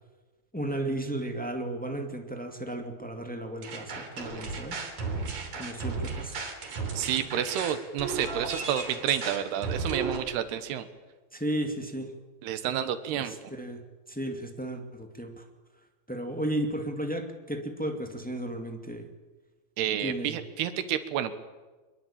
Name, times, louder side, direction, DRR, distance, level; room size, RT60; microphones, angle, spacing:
voice 1, 0.5-4.8 5.5-6.4 11.3-12.1 13.2-13.8 14.1-15.4 16.1-19.1 20.0-20.4, right 1 dB, 5° left, 4 dB, 1.0 m, -34 dB
sound 1, 3.6-10.2, right 4 dB, 50° right, 4.5 m, -34 dB
voice 2, 6.9-10.9 12.4-13.4 19.8-21.3, right 10 dB, 90° right, 10 dB, 3.4 m, -30 dB
24.0 x 22.0 x 8.8 m, 1.3 s
omnidirectional pair, 4.5 m